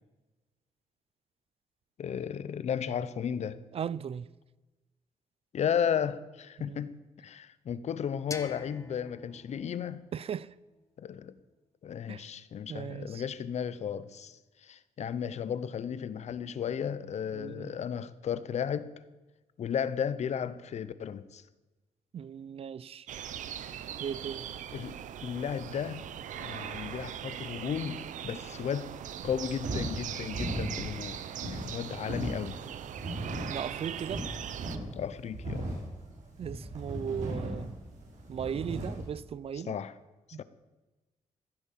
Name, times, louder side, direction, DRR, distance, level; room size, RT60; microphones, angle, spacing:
voice 1, 2.0-3.6 5.5-6.9 7.2-10.0 11.0-11.3 11.8-18.9 19.6-21.4 24.7-26.1 26.4-28.9 29.2-32.6 34.9-35.7 39.5-39.9 40.4-40.5, left 8 dB, 65° left, 1.0 m, -34 dB
voice 2, 3.7-4.3 6.6-6.9 10.1-10.5 12.1-12.2 12.7-13.2 17.3-17.7 22.1-23.1 24.0-24.5 33.5-34.2 36.4-37.7 38.3-39.8 40.3-40.4, right 8 dB, 50° right, 0.5 m, -37 dB
sound 1, 8.3-11.1, left 4 dB, 25° left, 1.2 m, -47 dB
sound 2, 23.1-34.8, right 9 dB, 90° right, 0.9 m, -40 dB
sound 3, 29.2-39.1, right 1 dB, 75° right, 5.2 m, -38 dB
16.0 x 11.0 x 7.5 m
cardioid pair, 110°, 13 cm